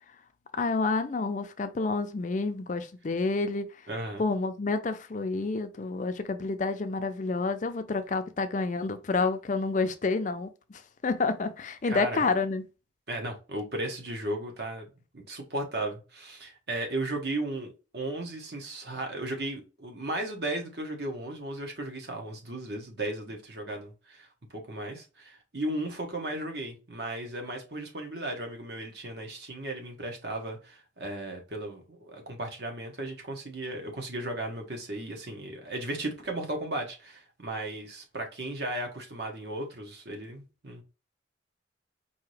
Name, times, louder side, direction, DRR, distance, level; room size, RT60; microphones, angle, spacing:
voice 1, 0.5-3.7 4.2-12.6, left 3 dB, 40° left, 0.4 m, -29 dB
voice 2, 3.9-4.2 11.8-12.2 13.1-14.9 15.1-40.8, right 1 dB, 60° right, 1.3 m, -35 dB
4.7 x 2.8 x 3.3 m
head